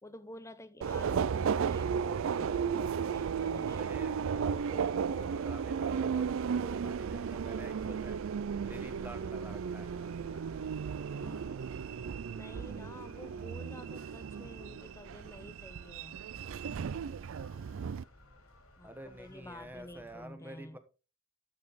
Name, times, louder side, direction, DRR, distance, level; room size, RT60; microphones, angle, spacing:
voice 1, 0.0-4.0 11.1-11.7 12.3-16.2 18.8-20.8, left 1 dB, 15° left, 0.7 m, -50 dB
Subway metro underground, 0.8-18.0, right 6 dB, 65° right, 0.4 m, -34 dB
voice 2, 3.7-8.2 8.6-9.9 18.8-20.8, right 1 dB, 10° right, 1.2 m, -49 dB
sound 1, 4.3-20.3, left 1 dB, 85° left, 3.0 m, -59 dB
13.0 x 5.2 x 4.0 m
head